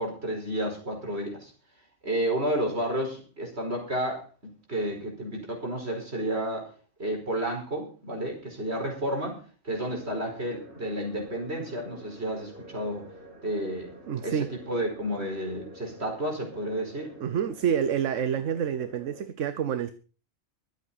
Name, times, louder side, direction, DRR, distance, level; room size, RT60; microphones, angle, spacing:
voice 1, 0.0-1.5 2.0-6.7 7.0-9.4 9.6-13.1 13.4-13.9 14.2-14.4 14.7-17.1, right 1 dB, 55° right, 1 dB, 5.1 m, -31 dB
sound 1, 9.7-19.2, equal, 55° left, 8.2 m, -48 dB
voice 2, 14.1-14.5 17.2-19.9, right 8 dB, 75° right, 11 dB, 1.2 m, -28 dB
24.0 x 8.2 x 4.2 m, 0.38 s
omnidirectional pair, 1.3 m